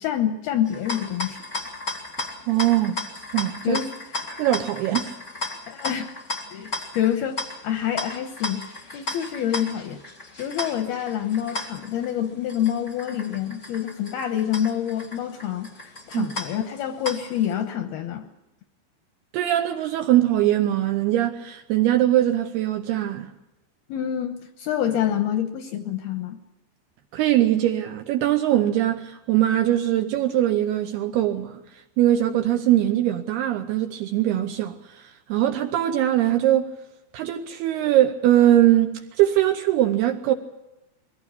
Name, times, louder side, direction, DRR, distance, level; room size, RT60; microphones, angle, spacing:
voice 1, 0.0-1.4 3.6-3.9 5.7-6.2 6.5-8.7 8.9-10.0 10.4-18.3 23.9-26.4, left 10 dB, 75° left, 2.4 m, -27 dB
sound 1, 0.6-17.5, left 3 dB, 35° left, 1.2 m, -35 dB
voice 2, 2.5-3.0 3.3-3.8 4.4-5.1 16.1-16.3 19.3-23.3 27.1-31.6 32.0-35.0 35.3-36.7 37.1-40.3, right 13 dB, 75° right, 2.5 m, -21 dB
22.0 x 17.0 x 8.3 m
omnidirectional pair, 5.4 m